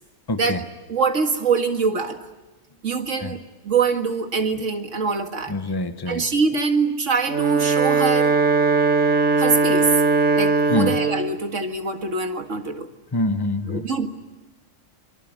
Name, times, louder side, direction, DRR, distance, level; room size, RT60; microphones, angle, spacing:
voice 1, 0.3-0.6 3.2-3.3 5.5-6.2 9.3-9.4 10.7-11.0 13.1-13.9, left 1 dB, 20° left, 9 dB, 1.2 m, -25 dB
voice 2, 0.9-2.3 2.8-5.5 6.1-8.4 9.4-9.9 10.3-12.9 13.7-14.1, right 4 dB, 90° right, 6 dB, 2.3 m, -24 dB
Wind instrument woodwind instrument, 7.2-11.4, right 4 dB, 70° right, 1.8 m, -19 dB
26.0 x 24.0 x 9.0 m, 1.1 s
omnidirectional pair, 1.3 m